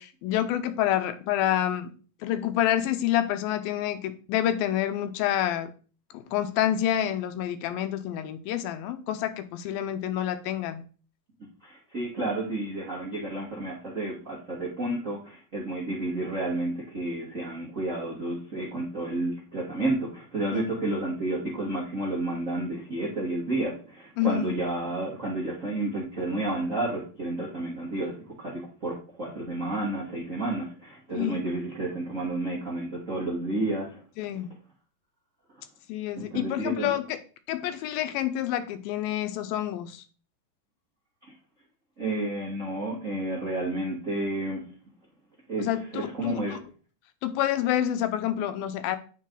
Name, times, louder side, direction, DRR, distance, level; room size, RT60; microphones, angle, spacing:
voice 1, 0.0-1.9 2.2-5.7 6.1-10.8 20.5-20.6 24.2-24.5 31.1-31.4 34.2-34.5 35.9-37.2 37.5-40.0 45.6-46.6 47.2-49.0, left 11 dB, 80° left, 2.4 m, -28 dB
voice 2, 11.6-34.0 36.2-36.9 42.0-44.6 45.5-46.6, right 2 dB, 50° right, 0.9 m, -31 dB
9.6 x 4.6 x 3.7 m
omnidirectional pair, 4.3 m